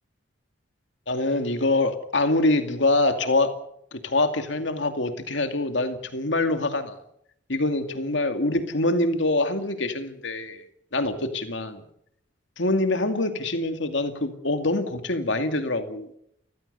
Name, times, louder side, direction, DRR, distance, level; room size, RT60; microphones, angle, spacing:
voice 1, 1.1-3.5 3.9-7.0 7.5-10.6 10.9-11.8 12.6-16.1, left 2 dB, 70° left, 7 dB, 2.4 m, -25 dB
29.0 x 15.5 x 6.9 m, 0.72 s
head